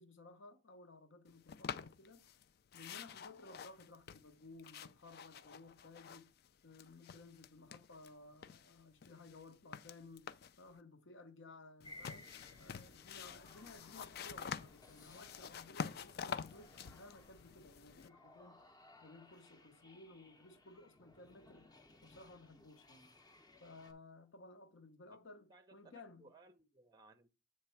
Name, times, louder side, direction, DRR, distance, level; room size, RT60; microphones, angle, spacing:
voice 1, 0.0-2.4 2.7-6.3 6.6-18.7 19.0-21.7 22.0-23.2 23.6-26.3, left 2 dB, 70° left, 0.8 m, -57 dB
sound 1, 1.5-2.4 2.7-6.5 6.7-8.1 8.4-10.6 11.8-18.1, left 7 dB, 50° left, 0.4 m, -48 dB
sound 2, 11.8-23.9, left 2 dB, 20° left, 0.7 m, -61 dB
voice 2, 25.5-27.3, right 3 dB, 20° right, 0.5 m, -63 dB
7.9 x 3.3 x 5.7 m
head